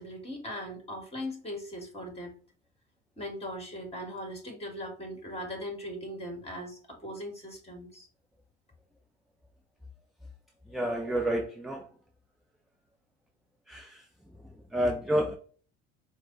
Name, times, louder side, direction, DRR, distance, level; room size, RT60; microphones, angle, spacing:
voice 1, 0.0-2.3 3.2-8.1, equal, 20° left, 3 dB, 1.8 m, -39 dB
voice 2, 10.7-11.9 13.7-14.0 14.7-15.4, equal, ahead, 3 dB, 0.4 m, -29 dB
4.6 x 2.0 x 3.9 m, 0.42 s
hypercardioid pair, 80°, 31 cm